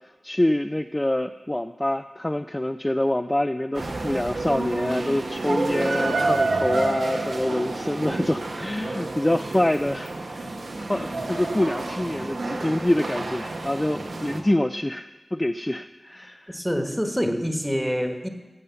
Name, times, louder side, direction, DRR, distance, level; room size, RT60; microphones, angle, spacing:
voice 1, 0.2-16.6, left 1 dB, 20° left, 8 dB, 0.4 m, -26 dB
sound 1, 3.7-14.4, right 2 dB, 85° right, 1.2 m, -29 dB
voice 2, 16.5-18.3, equal, ahead, 6 dB, 1.2 m, -26 dB
16.0 x 5.4 x 7.0 m, 1.2 s
cardioid pair, 50°, 0 cm